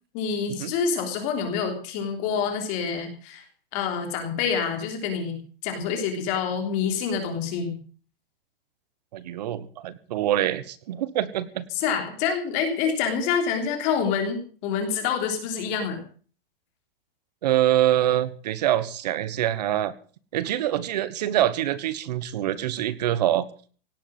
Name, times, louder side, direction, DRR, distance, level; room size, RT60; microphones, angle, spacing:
voice 1, 0.1-3.4 3.7-7.7 11.7-16.0, left 6 dB, 25° left, 5 dB, 3.5 m, -27 dB
voice 2, 9.1-11.7 17.4-19.9 20.3-23.5, right 12 dB, 45° right, 16 dB, 1.3 m, -25 dB
17.5 x 8.2 x 7.7 m, 0.42 s
supercardioid pair, 175°, 29 cm